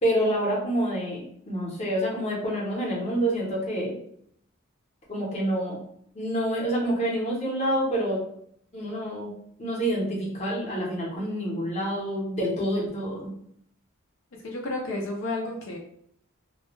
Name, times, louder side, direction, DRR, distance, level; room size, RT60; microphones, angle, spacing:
voice 1, 0.0-4.0 5.1-5.8 6.1-8.2 8.7-9.3 9.6-13.3, right 1 dB, 30° left, -4 dB, 0.7 m, -27 dB
voice 2, 14.3-15.8, left 2 dB, 70° left, -1 dB, 0.4 m, -31 dB
2.2 x 2.1 x 3.0 m, 0.69 s
head